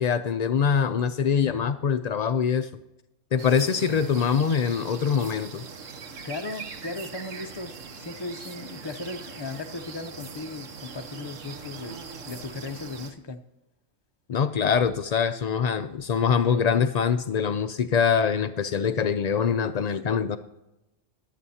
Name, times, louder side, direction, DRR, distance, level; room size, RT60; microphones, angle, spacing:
voice 1, 0.0-2.7 3.3-5.6 14.3-20.4, left 7 dB, 80° left, 9 dB, 0.3 m, -24 dB
sound 1, 3.4-13.1, right 5 dB, 80° right, 1.4 m, -41 dB
voice 2, 6.2-12.0 12.3-13.4, left 3 dB, 30° left, 7 dB, 0.6 m, -37 dB
23.0 x 8.3 x 2.8 m, 0.95 s
omnidirectional pair, 1.3 m